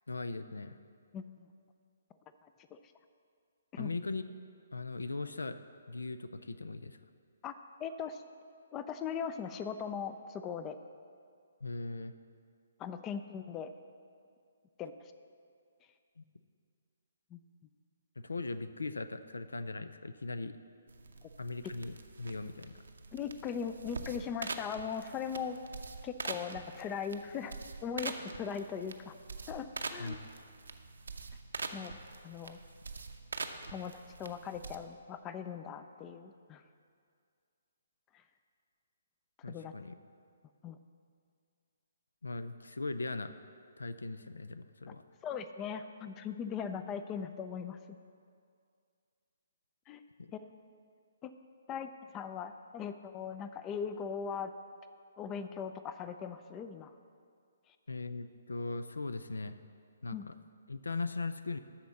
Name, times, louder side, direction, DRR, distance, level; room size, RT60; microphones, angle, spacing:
voice 1, 0.1-0.8 3.8-4.2 4.7-5.6 5.9-7.0 11.6-12.1 16.2-16.3 18.2-20.5 21.4-22.7 30.0-30.2 39.4-40.0 42.2-43.3 43.8-45.0 50.2-50.3 57.9-59.6 60.0-60.3 60.7-61.6, left 3 dB, 80° left, 12 dB, 0.4 m, -39 dB
voice 2, 7.8-8.2 8.7-10.8 12.8-13.7 14.8-14.9 17.3-17.4 23.1-25.6 26.0-27.6 27.8-29.1 29.5-30.2 31.7-32.6 33.7-33.9 34.2-36.6 39.5-39.7 40.6-40.8 45.2-47.8 49.9-50.0 50.3-50.6 51.2-51.3 51.7-54.5 55.2-56.9 60.1-60.3, left 7 dB, 20° left, 10 dB, 0.4 m, -39 dB
sound 1, 20.9-34.8, right 4 dB, 75° right, 0.7 m, -44 dB
12.5 x 4.3 x 7.0 m, 2.2 s
figure-of-eight pair, 135°, 0 cm